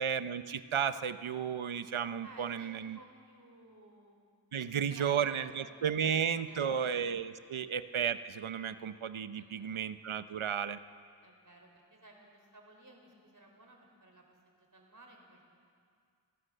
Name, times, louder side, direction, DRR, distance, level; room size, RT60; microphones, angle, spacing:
voice 1, 0.0-3.0 4.5-10.8, right 7 dB, 85° right, 12 dB, 0.9 m, -33 dB
voice 2, 2.2-4.3 4.6-7.1 7.6-7.7 9.3-9.8 11.2-15.5, right 2 dB, 40° right, 1 dB, 4.7 m, -57 dB
28.0 x 16.5 x 6.7 m, 2.2 s
wide cardioid pair, 70°, 47 cm